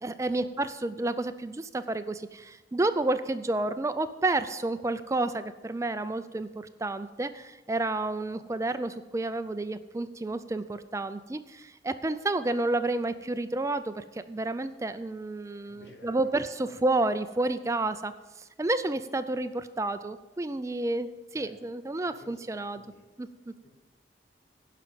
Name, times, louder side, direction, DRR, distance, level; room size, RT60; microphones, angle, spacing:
voice 1, 0.0-22.8 23.2-23.5, right 2 dB, 15° right, 11 dB, 0.4 m, -30 dB
voice 2, 15.6-16.7 21.3-21.7 22.0-23.1 23.6-23.7, left 1 dB, 75° left, 1 dB, 2.5 m, -54 dB
11.0 x 5.8 x 8.7 m, 1.1 s
head